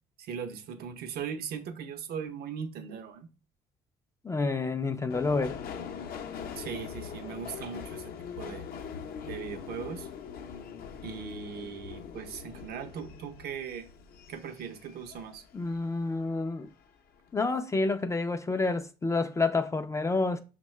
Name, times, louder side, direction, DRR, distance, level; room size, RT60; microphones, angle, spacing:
voice 1, 0.2-3.3 6.5-8.1 8.4-8.6 9.3-10.1 11.0-13.9 14.3-15.4, right 7 dB, 65° right, 0.6 m, -39 dB
voice 2, 4.2-5.6 15.5-16.7 17.3-20.4, left 3 dB, 15° left, 0.3 m, -29 dB
Subway metro underground, 5.1-15.8 16.2-16.9 17.2-17.3, left 7 dB, 60° left, 0.6 m, -42 dB
5.4 x 2.2 x 3.1 m
cardioid pair, 110°, 17 cm